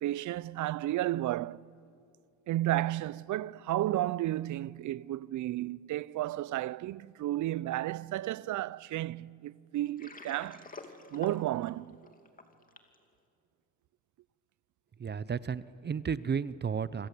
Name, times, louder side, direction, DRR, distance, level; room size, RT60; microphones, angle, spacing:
voice 1, 0.0-1.7 2.5-10.7 11.1-12.0, right 14 dB, 65° right, 0.6 m, -33 dB
Water, 9.8-13.0, left 4 dB, 25° left, 2.7 m, -48 dB
voice 2, 15.0-17.1, right 6 dB, 35° right, 0.7 m, -33 dB
26.5 x 26.5 x 8.4 m
cardioid pair, 100°, 32 cm